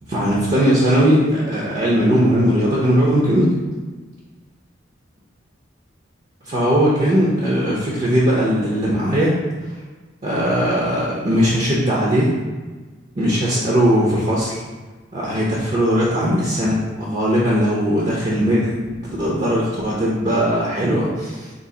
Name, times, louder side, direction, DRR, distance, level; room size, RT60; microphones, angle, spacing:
voice 1, 0.1-3.5 6.4-9.4 9.7-9.8 10.2-12.3 13.2-14.6 15.1-21.5, equal, 35° right, -5 dB, 0.6 m, -19 dB
3.9 x 2.5 x 3.7 m, 1.3 s
head